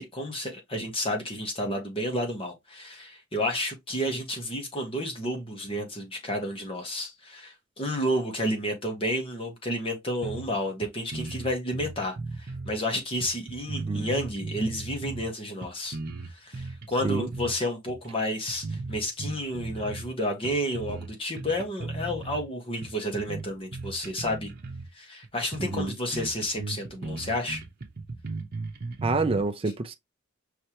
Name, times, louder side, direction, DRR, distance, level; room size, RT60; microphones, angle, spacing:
voice 1, 0.0-16.0 16.2-24.5 24.9-27.6, equal, 25° left, 1.5 m, -31 dB
sound 1, 10.2-10.6 10.8-10.9 11.1-12.8 13.2-15.3 15.6-17.5 17.9-18.1 18.5-20.1 20.4-21.1 21.4-22.4 22.8-24.9 25.2-25.3 25.5-25.9 26.1-29.4, right 3 dB, 50° right, 1.0 m, -36 dB
voice 2, 29.0-29.9, right 3 dB, 25° right, 0.4 m, -27 dB
5.6 x 3.2 x 2.9 m
head